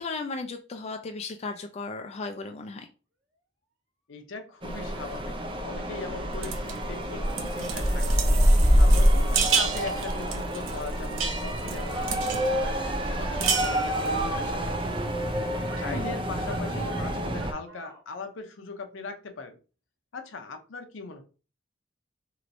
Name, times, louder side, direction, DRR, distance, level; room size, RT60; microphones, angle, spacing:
voice 1, 0.0-2.9 15.9-16.2, left 3 dB, 35° left, 4 dB, 0.3 m, -35 dB
voice 2, 4.1-5.3 5.6-8.0 8.7-12.8 13.1-15.1 15.8-19.6 20.1-21.2, left 3 dB, 80° left, 6 dB, 0.6 m, -40 dB
sound 1, 4.6-17.5, equal, 25° right, 0.5 m, -26 dB
sound 2, 6.4-6.8 7.3-12.5 12.9-13.0 13.2-14.2, right 6 dB, 90° right, 0.6 m, -31 dB
Motor vehicle (road) / Siren, 11.0-14.4 14.7-14.8 15.7-16.0 16.3-18.0 18.7-18.8, right 3 dB, 70° right, 0.9 m, -44 dB
3.0 x 2.9 x 2.6 m, 0.35 s
head